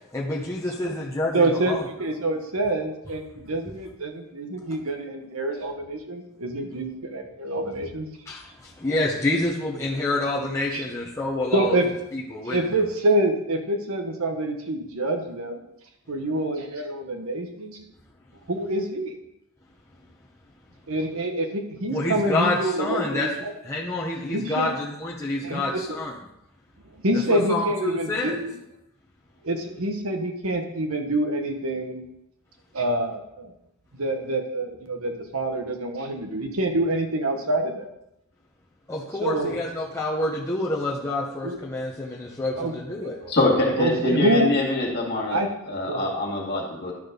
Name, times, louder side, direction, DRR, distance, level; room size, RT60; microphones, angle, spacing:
voice 1, 0.1-1.8 8.3-11.8 12.1-12.6 21.9-23.3 23.6-26.1 27.3-28.4 38.9-43.2, left 2 dB, 15° left, -5 dB, 0.9 m, -28 dB
voice 2, 1.3-8.1 10.7-10.8 11.5-11.9 12.3-15.6 16.1-17.8 18.5-19.1 20.9-23.5 24.3-24.7 25.4-26.0 27.0-28.5 29.4-32.0 32.7-33.5 33.9-37.9 39.2-39.6 41.4-41.6 42.6-42.8 43.0-43.3 43.8-44.5 45.3-46.1, right 1 dB, 70° right, 5 dB, 1.1 m, -26 dB
voice 3, 43.3-45.4 45.7-46.9, left 2 dB, 45° left, -2 dB, 2.2 m, -24 dB
11.5 x 4.3 x 5.2 m, 0.83 s
head